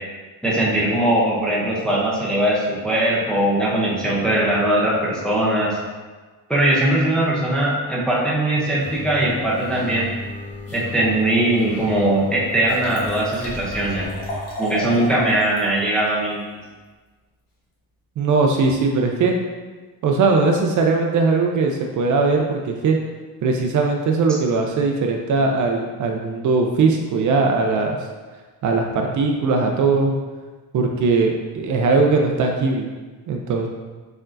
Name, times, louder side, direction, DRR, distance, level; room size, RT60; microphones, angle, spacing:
voice 1, 0.4-5.8 6.5-10.1 10.7-14.0 14.6-16.5, right 1 dB, ahead, -6 dB, 0.6 m, -20 dB
sound 1, 8.8-14.3, left 2 dB, 20° left, 1.1 m, -34 dB
Liquid, 12.2-12.3 12.5-15.7 16.1-16.2, left 1 dB, 80° left, 1.3 m, -33 dB
voice 2, 18.2-19.4 20.0-23.0 23.4-28.0 28.6-30.2 30.7-32.9 33.3-33.7, right 4 dB, 50° right, 2 dB, 0.4 m, -19 dB
4.4 x 4.4 x 2.5 m, 1.3 s
cardioid pair, 170°, 41 cm